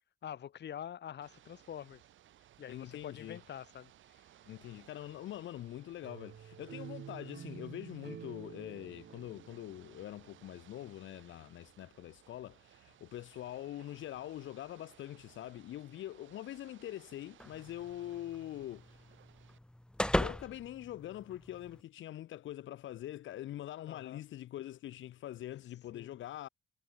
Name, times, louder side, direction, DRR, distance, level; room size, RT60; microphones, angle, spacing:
voice 1, 0.2-2.0 2.6-4.2 23.9-24.2 25.9-26.2, left 9 dB, 60° left, 3.0 m, -46 dB
Ocean / Boat Water vehicle, 1.2-19.6, right 12 dB, 75° right, 2.9 m, -62 dB
voice 2, 2.7-3.4 4.5-19.0 20.2-26.5, left 13 dB, 75° left, 1.5 m, -44 dB
sound 1, 6.0-10.9, right 8 dB, 60° right, 5.8 m, -49 dB
sound 2, 17.4-21.8, left 1 dB, 5° left, 0.7 m, -38 dB
cardioid pair, 90°, 20 cm